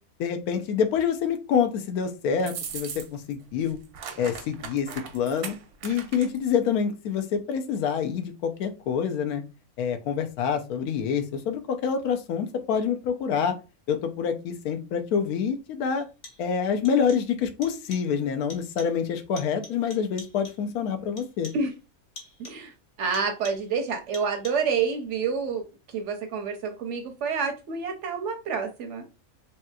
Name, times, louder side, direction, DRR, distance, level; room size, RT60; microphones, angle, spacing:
voice 1, 0.2-3.8 4.2-4.9 5.1-5.6 5.8-9.4 9.8-13.6 13.9-16.1 16.4-21.5, left 7 dB, 85° left, 7 dB, 1.1 m, -27 dB
sound 1, 2.4-3.3 3.6-6.5, right 7 dB, 90° right, 1.1 m, -38 dB
sound 2, 15.0-15.1 16.0-16.6 16.8-17.4 17.6-18.2 18.5-19.1 19.4-20.7 21.2-21.7 22.2-22.7 23.1-23.8 24.1-24.8, left 2 dB, 65° left, 1.2 m, -47 dB
voice 2, 22.4-22.7 23.0-25.6 25.9-29.1, right 5 dB, 65° right, 5 dB, 0.8 m, -28 dB
3.2 x 2.9 x 2.2 m, 0.29 s
omnidirectional pair, 1.5 m